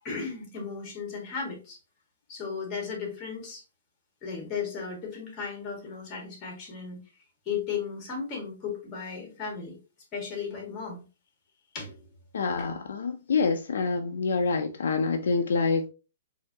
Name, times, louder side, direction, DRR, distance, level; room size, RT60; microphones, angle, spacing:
voice 1, 0.0-1.8 2.3-3.6 4.2-7.0 7.4-9.8 10.1-11.0 11.7-12.0 12.6-12.7, left 6 dB, 25° left, 1.7 m, -35 dB
voice 2, 12.3-15.9, left 4 dB, 75° left, 0.6 m, -26 dB
4.3 x 2.8 x 2.7 m
hypercardioid pair, 160°, 0 cm